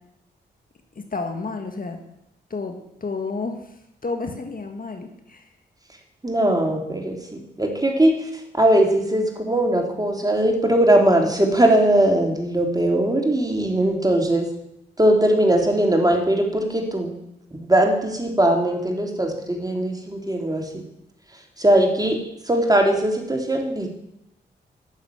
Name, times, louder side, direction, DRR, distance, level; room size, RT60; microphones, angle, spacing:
voice 1, 1.0-2.0 2.5-2.8 3.0-3.7 4.0-5.5, left 3 dB, 50° left, 5 dB, 1.9 m, -30 dB
voice 2, 6.2-14.5 15.0-17.1 17.7-20.8 21.6-23.9, right 1 dB, 20° right, 3 dB, 3.5 m, -20 dB
11.5 x 7.3 x 9.3 m, 0.80 s
supercardioid pair, 45°, 19 cm